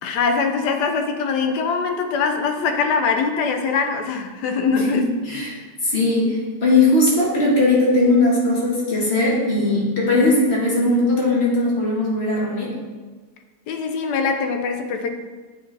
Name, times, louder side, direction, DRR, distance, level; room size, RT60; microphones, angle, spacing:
voice 1, 0.0-5.0 13.7-15.1, left 5 dB, 80° left, 6 dB, 1.3 m, -22 dB
voice 2, 4.7-12.7, left 2 dB, 40° left, -4 dB, 1.7 m, -19 dB
8.6 x 4.3 x 3.3 m, 1.4 s
omnidirectional pair, 1.8 m